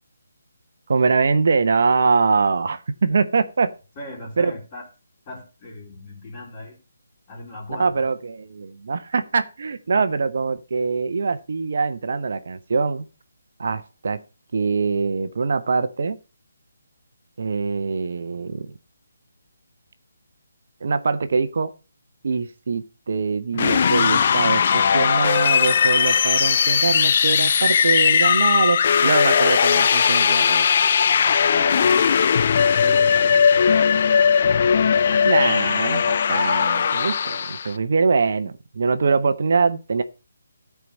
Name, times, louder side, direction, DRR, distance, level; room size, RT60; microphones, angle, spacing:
voice 1, 0.9-3.7 4.4-4.5 7.8-13.0 13.6-14.2 14.5-16.2 17.4-18.7 20.8-21.7 22.2-28.8 29.0-30.7 35.2-36.0 36.3-40.0, right 4 dB, 60° right, 11 dB, 0.9 m, -23 dB
voice 2, 4.0-4.9 5.3-6.8 7.3-8.1 31.4-32.4 32.8-34.5 35.4-35.7, left 2 dB, 25° left, -5 dB, 3.9 m, -38 dB
sound 1, 23.5-37.7, left 7 dB, 45° left, 0.4 m, -18 dB
12.5 x 4.7 x 5.3 m, 0.32 s
figure-of-eight pair, 155°, 0 cm